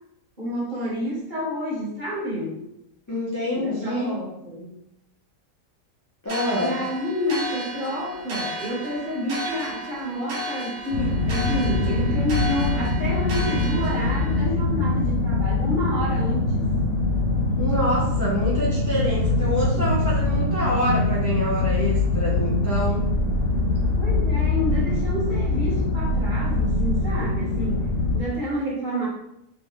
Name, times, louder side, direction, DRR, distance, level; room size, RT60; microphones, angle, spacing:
voice 1, 0.4-2.6 3.5-4.8 6.5-16.7 23.7-27.8 28.1-29.1, left 1 dB, 30° right, -7 dB, 1.6 m, -29 dB
voice 2, 3.1-4.1 6.2-6.8 17.6-23.1, equal, 20° left, -6 dB, 0.5 m, -27 dB
sound 1, 6.3-14.5, equal, 70° right, 1.6 m, -34 dB
sound 2, 10.9-28.2, left 2 dB, 60° left, 1.3 m, -23 dB
3.8 x 3.7 x 3.1 m, 0.80 s
omnidirectional pair, 1.8 m